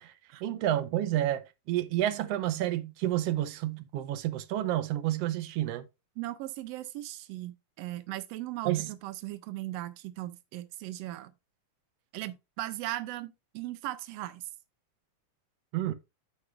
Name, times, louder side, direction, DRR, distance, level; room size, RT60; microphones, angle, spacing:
voice 1, 0.4-5.8 8.6-8.9 15.7-15.9, right 13 dB, 75° right, 1.5 m, -30 dB
voice 2, 6.2-11.3 12.1-14.5, right 15 dB, 90° right, 1.4 m, -38 dB
14.0 x 4.9 x 2.3 m
omnidirectional pair, 3.6 m